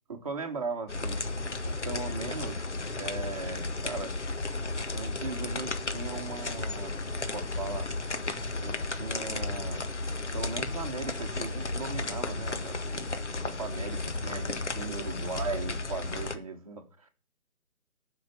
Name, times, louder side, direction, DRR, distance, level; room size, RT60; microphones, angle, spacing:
voice 1, 0.1-1.2 1.6-4.2 4.9-7.9 8.6-9.8 10.3-17.1, right 4 dB, 25° right, 1.5 m, -38 dB
sound 1, 0.9-16.4, left 3 dB, 55° left, 1.6 m, -34 dB
11.0 x 5.9 x 7.8 m
figure-of-eight pair, 160°, 43 cm